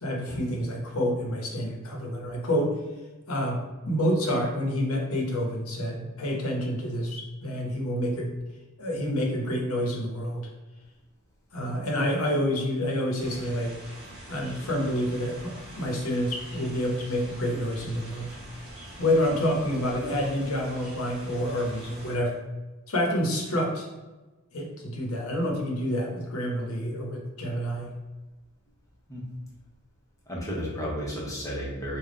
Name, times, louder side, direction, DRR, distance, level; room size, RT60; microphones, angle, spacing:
voice 1, 0.0-2.7 3.3-8.3 8.8-10.5 11.5-13.7 14.3-18.3 19.0-22.4 22.9-23.9 24.5-27.9, equal, 80° left, 0 dB, 0.9 m, -28 dB
sound 1, 13.2-22.2, right 1 dB, 30° right, 1.3 m, -44 dB
voice 2, 30.3-32.0, equal, 15° left, -4 dB, 0.8 m, -33 dB
3.4 x 2.3 x 3.8 m, 1.1 s
head